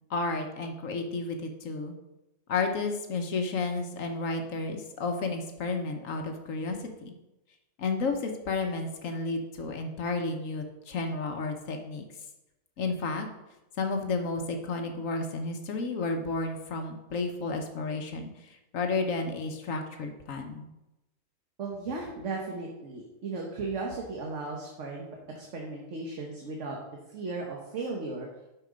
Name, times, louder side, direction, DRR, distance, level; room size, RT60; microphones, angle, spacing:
voice 1, 0.1-1.9 2.5-7.1 7.8-12.0 12.8-13.3 13.8-20.7, left 3 dB, 80° left, 4 dB, 1.3 m, -32 dB
voice 2, 21.6-25.1 25.3-26.8 27.1-28.3, right 3 dB, 65° right, 0 dB, 1.5 m, -36 dB
8.8 x 5.8 x 5.1 m, 0.97 s
omnidirectional pair, 1.4 m